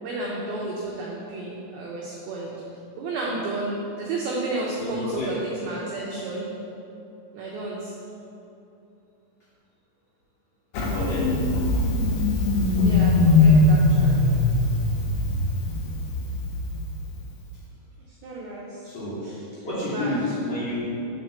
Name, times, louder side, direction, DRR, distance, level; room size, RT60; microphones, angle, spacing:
voice 1, 0.0-2.5 3.0-6.5 7.3-7.9 12.7-14.3 18.2-18.9 19.2-20.2, right 2 dB, 85° right, -4 dB, 2.2 m, -32 dB
voice 2, 4.8-5.3 10.8-11.2 18.8-19.3 19.5-20.9, left 1 dB, 55° left, -13 dB, 1.9 m, -30 dB
Engine starting, 10.7-17.2, left 2 dB, 70° left, 2.3 m, -21 dB
5.8 x 4.6 x 6.4 m, 2.8 s
omnidirectional pair, 5.3 m